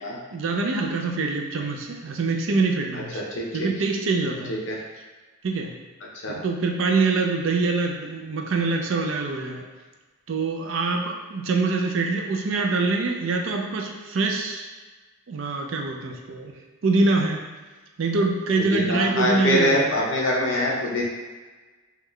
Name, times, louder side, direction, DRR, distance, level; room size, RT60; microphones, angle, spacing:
voice 1, 0.3-3.2 3.5-4.5 5.4-5.7 6.3-9.6 10.3-14.7 15.3-16.5 16.8-17.4 18.0-20.0, right 3 dB, 65° right, 2 dB, 0.4 m, -24 dB
voice 2, 3.1-3.7 4.5-4.8 6.2-6.4 18.7-21.0, left 1 dB, 55° left, -3 dB, 0.7 m, -24 dB
3.6 x 2.3 x 3.1 m, 1.3 s
head